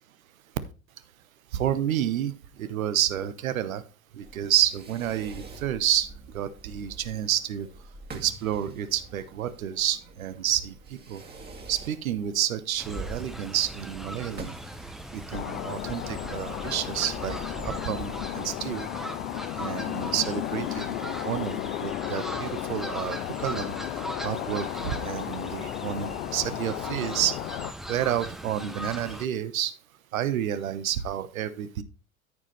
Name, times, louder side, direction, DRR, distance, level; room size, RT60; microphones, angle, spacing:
voice 1, 1.5-2.3 2.6-3.8 4.2-6.1 6.3-7.7 8.2-10.7 11.1-11.2 11.7-14.5 15.1-18.9 19.6-23.7 24.2-27.3 27.9-29.7 30.1-31.8, right 11 dB, 75° right, 14 dB, 1.0 m, -29 dB
Fireworks, 4.2-17.3, right 3 dB, 25° right, 2.3 m, -47 dB
Fowl, 12.8-29.3, right 1 dB, ahead, 0.8 m, -39 dB
sound 1, 15.3-27.7, left 16 dB, 65° left, 0.5 m, -34 dB
13.5 x 5.0 x 3.2 m, 0.33 s
figure-of-eight pair, 80°, 42 cm